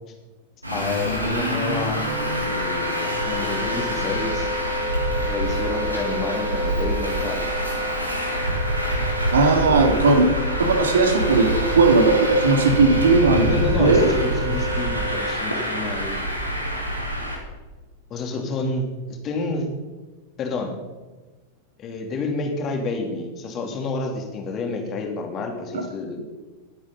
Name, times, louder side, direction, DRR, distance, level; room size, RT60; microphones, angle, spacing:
Traffic noise roadway noise, 0.6-17.4, equal, 85° right, 2.8 m, -26 dB
voice 1, 0.7-2.1 2.4-4.5 5.1-7.5 9.6-10.1 13.4-16.1 18.1-19.7 20.4-20.7 21.8-26.3, left 3 dB, 30° left, 3 dB, 3.1 m, -29 dB
Wind instrument woodwind instrument, 2.1-15.4, equal, 40° right, 2.0 m, -31 dB
voice 2, 9.3-10.3 10.6-14.1 25.7-25.8, right 3 dB, 65° right, 3 dB, 2.7 m, -18 dB
20.5 x 8.8 x 5.5 m, 1.3 s
figure-of-eight pair, 90°, 0 cm